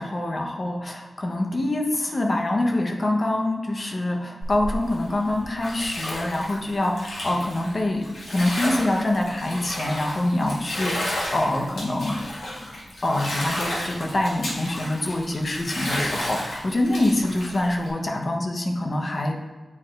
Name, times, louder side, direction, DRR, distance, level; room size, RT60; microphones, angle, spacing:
voice 1, 0.0-12.3 13.0-19.4, left 1 dB, 45° left, 1 dB, 1.0 m, -25 dB
Bathtub (filling or washing), 4.4-17.9, left 1 dB, 80° left, 1.8 m, -32 dB
9.6 x 4.2 x 2.5 m, 1.3 s
wide cardioid pair, 75°, 0 cm